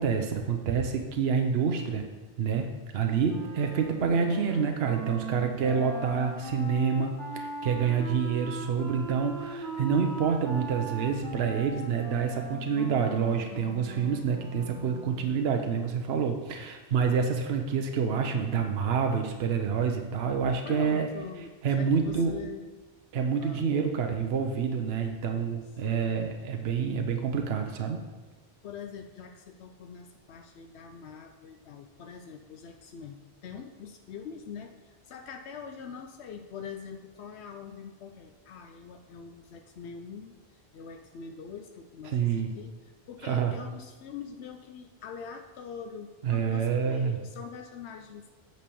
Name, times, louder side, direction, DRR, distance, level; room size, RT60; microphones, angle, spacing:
voice 1, 0.0-2.0 2.4-2.7 2.9-21.1 21.6-22.4 23.1-28.0 42.1-42.5 43.2-43.5 46.2-47.2, right 6 dB, 70° right, 4 dB, 1.0 m, -27 dB
Wind instrument woodwind instrument, 3.3-15.3, right 3 dB, 5° left, 1.3 m, -40 dB
voice 2, 20.7-22.6 23.4-23.7 25.8-26.3 28.6-33.2 33.4-48.3, left 6 dB, 85° left, 6 dB, 0.9 m, -43 dB
8.5 x 4.5 x 6.9 m, 1.3 s
omnidirectional pair, 1.1 m